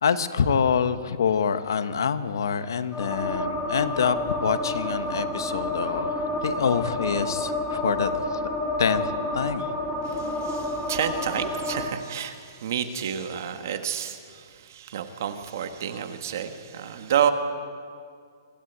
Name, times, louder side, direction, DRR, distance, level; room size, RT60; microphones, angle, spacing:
voice 1, 0.0-6.1 6.4-8.4 8.8-9.7, left 6 dB, 80° left, 11 dB, 1.3 m, -26 dB
sound 1, 2.9-11.8, left 1 dB, 5° left, 1.8 m, -29 dB
voice 2, 10.0-17.3, right 9 dB, 50° right, 7 dB, 1.6 m, -29 dB
25.5 x 13.0 x 8.1 m, 2.2 s
hypercardioid pair, 175°, 2 cm